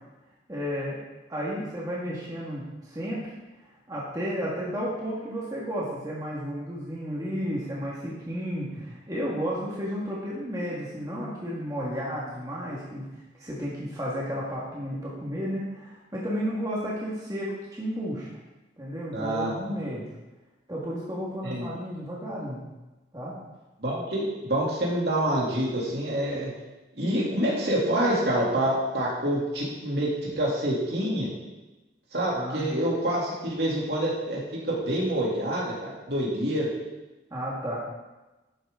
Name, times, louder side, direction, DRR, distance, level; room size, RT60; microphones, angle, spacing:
voice 1, 0.5-1.0 1.3-3.3 3.9-13.1 13.4-18.3 18.8-20.1 20.7-22.6 23.1-23.4 32.4-32.7 37.3-37.8, equal, 20° right, -6 dB, 1.9 m, -32 dB
voice 2, 19.1-19.5 21.4-21.7 23.8-26.5 26.9-31.3 32.1-34.4 34.7-36.7, right 1 dB, 55° right, -4 dB, 3.0 m, -27 dB
11.5 x 9.4 x 3.8 m, 1.1 s
head